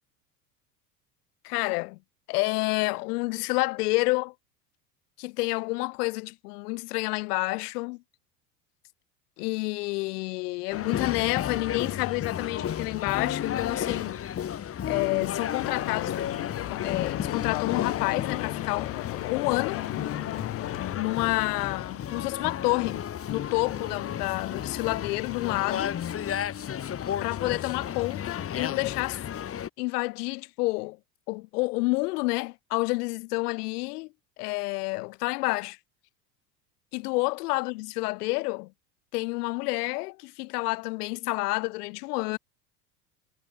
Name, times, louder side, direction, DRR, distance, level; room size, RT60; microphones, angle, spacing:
voice 1, 1.4-2.0 2.3-4.3 5.2-8.0 9.4-14.2 14.9-16.1 16.7-19.0 19.3-19.8 20.9-25.9 27.2-29.2 29.8-31.0 31.3-34.1 34.4-35.8 36.9-38.7 39.1-42.4, left 24 dB, 65° left, 1.4 m, -29 dB
sound 1, 10.7-29.7, left 9 dB, 25° left, 1.4 m, -33 dB
Stream / Boat Water vehicle, 15.6-21.0, left 40 dB or more, 50° left, 0.5 m, -35 dB
hypercardioid pair, 85°, 50 cm